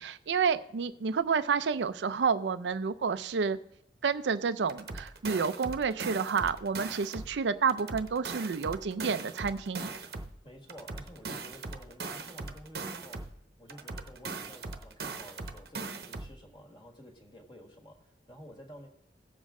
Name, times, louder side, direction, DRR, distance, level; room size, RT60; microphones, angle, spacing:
voice 1, 0.0-3.6 4.0-9.9, right 5 dB, 85° right, 13 dB, 0.5 m, -30 dB
sound 1, 4.7-7.4 7.7-10.4 10.7-13.4 13.7-16.4, right 3 dB, 60° right, 0.9 m, -40 dB
voice 2, 10.4-18.9, equal, 25° left, 2 dB, 1.6 m, -51 dB
17.5 x 7.3 x 3.7 m, 0.72 s
head